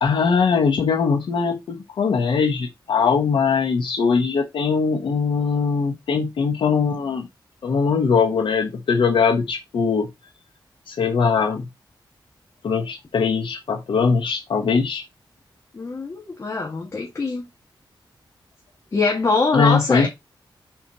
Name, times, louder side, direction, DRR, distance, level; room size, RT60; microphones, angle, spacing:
voice 1, 0.0-7.3 7.6-10.1 10.9-11.6 12.6-15.0 19.5-20.1, left 5 dB, 85° left, 1.0 m, -21 dB
voice 2, 15.7-17.5 18.9-20.1, left 3 dB, 35° left, 1.5 m, -23 dB
5.7 x 4.4 x 4.1 m
wide cardioid pair, 145°, 8 cm